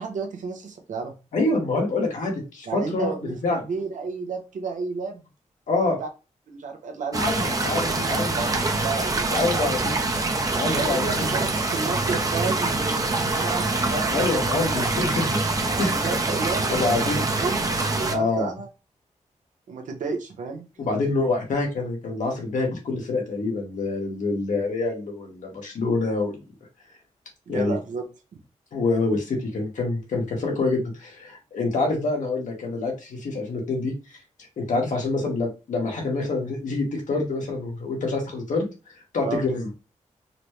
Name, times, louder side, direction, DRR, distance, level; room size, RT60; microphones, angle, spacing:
voice 1, 0.0-1.2 2.7-5.2 6.0-6.1 6.5-7.3 7.8-9.7 10.7-14.1 15.7-17.6 17.9-18.7 19.7-20.6 27.5-28.0 28.3-28.4 39.2-39.4, right 4 dB, 90° right, 4 dB, 0.8 m, -32 dB
voice 2, 1.3-3.1 3.4-3.6 5.7-6.0 7.1-8.4 9.3-9.8 10.5-11.3 14.1-15.3 15.8-16.1 16.7-17.3 18.1-18.5 20.8-26.4 27.5-27.7 28.7-33.9 34.6-38.7 39.1-39.7, left 3 dB, 85° left, 0 dB, 1.4 m, -26 dB
sound 1, 7.1-18.1, right 2 dB, 30° right, 0.6 m, -25 dB
4.1 x 2.1 x 3.1 m, 0.30 s
wide cardioid pair, 90°, 13 cm